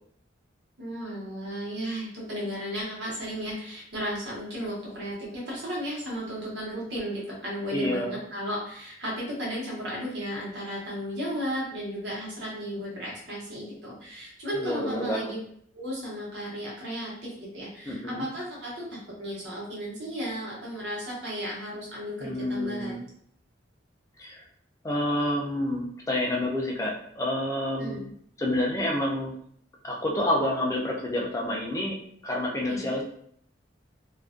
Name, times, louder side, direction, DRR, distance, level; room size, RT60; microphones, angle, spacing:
voice 1, 0.8-15.4 15.7-23.0 27.8-28.1 32.7-32.9, equal, 65° right, -4 dB, 0.9 m, -34 dB
voice 2, 7.7-8.2 14.5-15.3 17.9-18.3 22.2-23.0 24.2-24.4 24.8-28.0 28.4-29.4 29.8-32.0 32.2-33.0, left 1 dB, 15° left, -2 dB, 0.3 m, -28 dB
2.4 x 2.1 x 2.4 m, 0.64 s
head